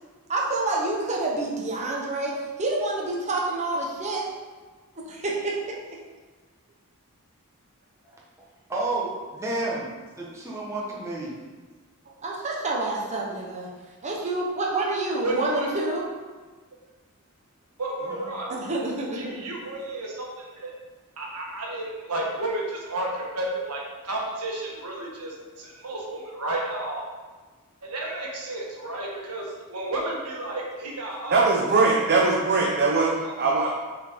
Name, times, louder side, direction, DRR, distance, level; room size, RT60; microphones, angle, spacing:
voice 1, 0.3-4.3 5.1-5.7 12.2-13.7 14.0-16.1 18.5-19.3, right 2 dB, 30° right, -2 dB, 1.2 m, -28 dB
voice 2, 8.7-11.3 18.1-18.3, right 2 dB, 15° right, -5 dB, 1.2 m, -31 dB
voice 3, 15.2-15.7 17.8-18.5 19.1-20.7 21.2-27.0 27.8-31.4 32.1-32.2 33.2-33.3, right 1 dB, 90° right, -2 dB, 1.5 m, -32 dB
voice 4, 31.3-33.7, right 3 dB, 50° right, -2 dB, 0.8 m, -21 dB
6.8 x 4.3 x 4.6 m, 1.3 s
head